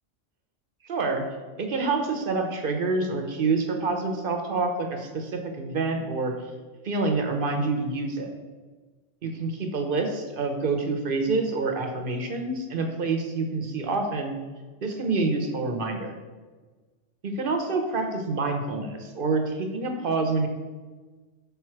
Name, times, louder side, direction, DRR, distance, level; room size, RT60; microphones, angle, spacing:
voice 1, 0.8-1.2 1.6-6.3 6.8-8.4 9.2-14.3 14.8-16.1 17.2-20.5, right 3 dB, 50° right, 5 dB, 0.9 m, -27 dB
5.5 x 4.6 x 5.8 m, 1.3 s
omnidirectional pair, 1.3 m